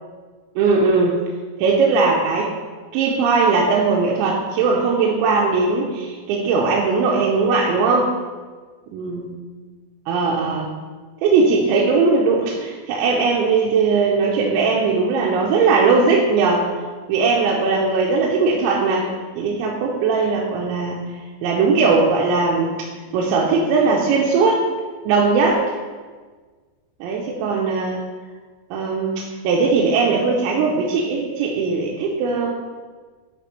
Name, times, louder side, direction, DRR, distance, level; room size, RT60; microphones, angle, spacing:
voice 1, 0.6-1.1 1.6-2.5 2.9-8.1 8.9-9.2 10.1-10.7 11.2-16.7 17.1-19.1 19.4-21.0 21.4-22.9 23.1-24.6 25.1-25.7 27.0-28.0 28.7-32.6, right 4 dB, 90° right, -2 dB, 3.0 m, -19 dB
10.0 x 5.0 x 3.1 m, 1.4 s
omnidirectional pair, 5.2 m